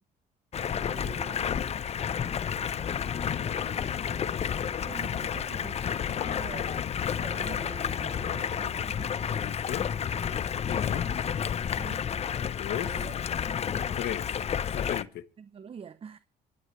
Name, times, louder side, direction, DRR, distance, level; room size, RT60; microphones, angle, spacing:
Stream, 0.5-15.0, left 8 dB, 40° left, 0.8 m, -31 dB
voice 1, 0.8-1.9 3.4-4.2 4.8-5.9 6.2-6.8 7.2-9.2 10.7-10.8 11.7-12.1 12.7-13.2 15.4-16.2, right 6 dB, 35° right, 0.8 m, -45 dB
voice 2, 6.1-6.4 9.4-9.9 10.7-11.1 12.4-12.9 13.9-14.3 14.7-15.2, left 12 dB, 70° left, 1.1 m, -36 dB
26.5 x 13.0 x 3.3 m
cardioid pair, 110°, 17 cm